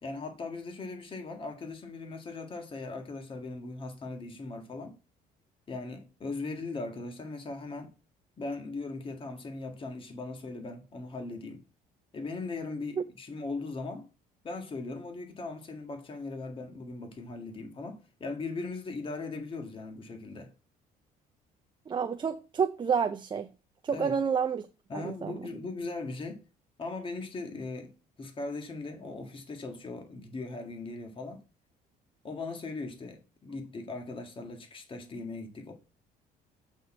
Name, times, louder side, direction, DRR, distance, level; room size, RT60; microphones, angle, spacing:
voice 1, 0.0-5.0 5.7-7.9 8.4-11.6 12.1-14.1 14.4-20.5 23.9-24.2 24.9-26.4 26.8-31.4 32.2-35.7, left 3 dB, 30° left, 1.8 m, -39 dB
voice 2, 21.9-23.5 23.8-24.7 24.9-25.4, right 6 dB, 30° right, 0.6 m, -29 dB
8.0 x 4.2 x 4.4 m
cardioid pair, 110°, 17 cm